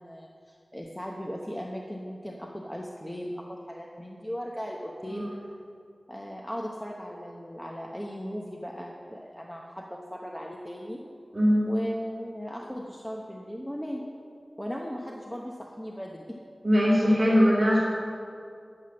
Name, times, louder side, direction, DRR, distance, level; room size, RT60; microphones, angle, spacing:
voice 1, 0.0-5.3 6.1-11.0 11.7-14.0 14.6-16.4, equal, 10° left, -1 dB, 0.9 m, -37 dB
voice 2, 11.3-11.7 16.6-17.8, equal, 30° right, -9 dB, 2.5 m, -21 dB
10.5 x 8.0 x 7.5 m, 2.3 s
wide cardioid pair, 75°, 0 cm